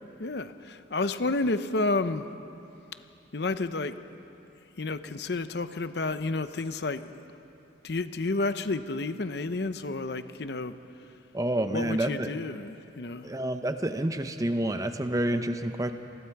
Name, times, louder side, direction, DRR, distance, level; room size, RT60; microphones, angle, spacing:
voice 1, 0.2-2.3 3.3-4.0 4.8-7.2 7.8-10.7 11.7-13.3, left 3 dB, 60° left, 11 dB, 0.7 m, -30 dB
voice 2, 11.3-12.3 13.2-15.9, right 1 dB, 20° right, 8 dB, 0.7 m, -28 dB
28.0 x 20.5 x 4.7 m, 2.8 s
head